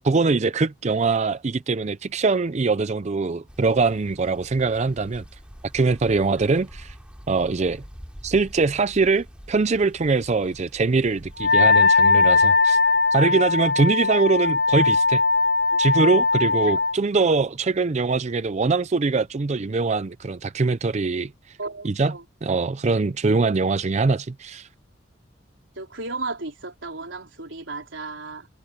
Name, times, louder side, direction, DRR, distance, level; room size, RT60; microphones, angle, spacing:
voice 1, 0.0-5.2 5.7-6.9 7.3-7.8 8.2-12.8 13.1-15.2 15.8-21.3 21.8-22.1 22.4-24.7, right 4 dB, 35° right, 0.5 m, -22 dB
sound 1, 3.5-11.5, equal, 5° right, 4.2 m, -45 dB
Wind instrument woodwind instrument, 11.4-17.0, left 3 dB, 55° left, 0.6 m, -19 dB
voice 2, 16.5-16.8 21.6-22.2 25.8-28.5, right 3 dB, 85° right, 3.8 m, -35 dB
head